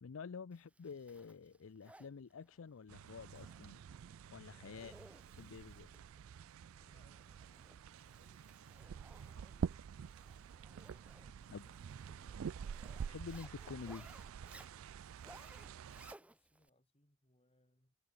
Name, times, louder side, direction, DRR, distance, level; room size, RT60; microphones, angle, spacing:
voice 1, 0.0-3.8 4.3-4.9 5.4-5.9 11.5-11.7 13.1-14.1, left 5 dB, 75° left, 0.5 m, -49 dB
Zipper (clothing), 0.5-16.7, right 1 dB, 5° right, 0.7 m, -62 dB
sound 1, 2.9-16.2, right 7 dB, 85° right, 0.4 m, -47 dB
voice 2, 4.7-5.2 6.7-10.7 11.4-12.6 15.4-18.0, left 1 dB, 30° left, 7.4 m, -76 dB
head